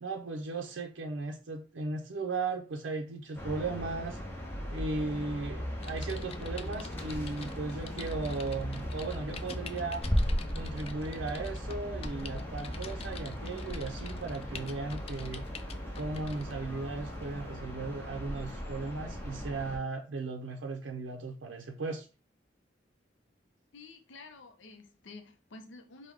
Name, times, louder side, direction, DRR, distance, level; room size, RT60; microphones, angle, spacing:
voice 1, 0.0-4.2 4.7-10.1 10.6-15.4 16.0-22.1, right 3 dB, 80° right, 0.5 m, -36 dB
sound 1, 3.4-19.8, equal, 15° left, 0.8 m, -37 dB
Typing, 5.8-16.5 17.1-17.3, left 6 dB, 30° left, 0.3 m, -49 dB
voice 2, 23.7-26.1, left 3 dB, 90° left, 0.6 m, -50 dB
4.7 x 2.2 x 3.4 m
head